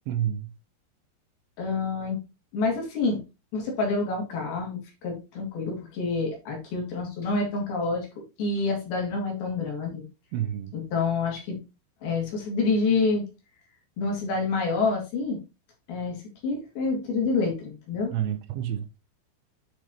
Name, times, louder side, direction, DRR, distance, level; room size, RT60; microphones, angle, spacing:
voice 1, 0.1-0.5 10.3-10.8 18.1-19.0, right 10 dB, 80° right, 2.8 m, -29 dB
voice 2, 1.6-2.2 2.5-3.2 3.5-8.1 8.4-10.1 10.7-11.6 12.0-13.2 14.0-15.4 15.9-16.2 16.4-18.1, left 3 dB, 60° left, 3.8 m, -27 dB
8.5 x 6.2 x 2.9 m
omnidirectional pair, 5.4 m